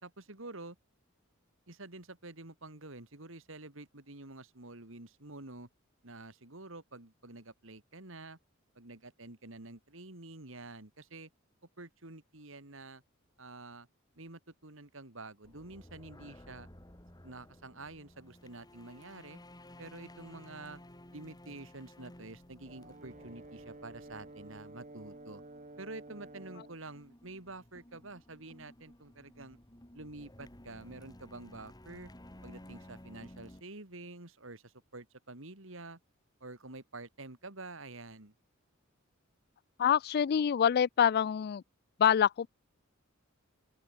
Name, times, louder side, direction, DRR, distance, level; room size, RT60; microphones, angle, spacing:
voice 1, 0.0-0.8 1.7-5.7 6.0-8.4 8.7-11.3 11.8-13.0 13.4-13.9 14.2-16.7 17.2-19.4 19.8-20.8 21.1-25.4 25.8-29.6 29.9-32.1 32.4-36.0 36.4-38.3, right 2 dB, 65° right, 3.0 m, -48 dB
sound 1, 15.4-33.6, left 1 dB, 20° left, 2.6 m, -55 dB
Brass instrument, 22.6-26.8, right 2 dB, 40° right, 2.1 m, -51 dB
voice 2, 39.8-41.6 42.0-42.5, left 8 dB, 50° left, 0.3 m, -26 dB
open air
head